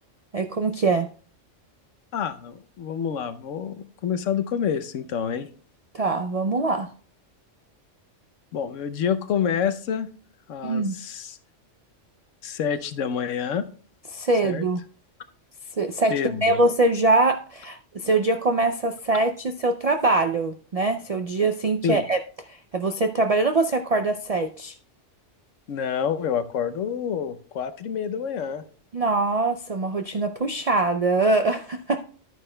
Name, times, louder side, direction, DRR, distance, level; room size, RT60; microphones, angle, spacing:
voice 1, 0.3-1.1 5.9-6.9 10.6-11.0 14.1-14.8 15.8-22.2 22.5-24.8 28.9-32.0, right 2 dB, 65° right, 7 dB, 0.3 m, -23 dB
voice 2, 2.1-5.5 8.5-10.1 10.5-11.4 12.4-13.6 14.4-14.7 16.1-16.6 21.8-22.0 25.7-28.6, left 7 dB, 85° left, 11 dB, 1.1 m, -28 dB
11.0 x 9.2 x 2.2 m, 0.43 s
omnidirectional pair, 1.3 m